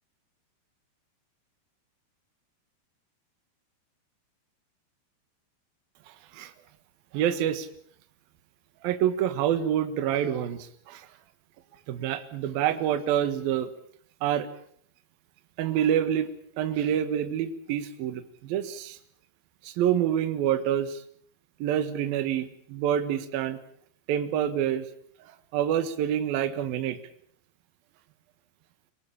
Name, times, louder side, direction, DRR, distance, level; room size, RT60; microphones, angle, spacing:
voice 1, 6.1-6.5 7.1-7.7 8.8-11.1 11.9-13.7 14.2-14.5 15.6-16.3 16.6-19.0 19.6-21.0 21.6-23.6 24.1-24.9 25.2-27.0, right 10 dB, 65° right, 10 dB, 3.0 m, -27 dB
25.5 x 18.0 x 8.7 m, 0.62 s
omnidirectional pair, 5.1 m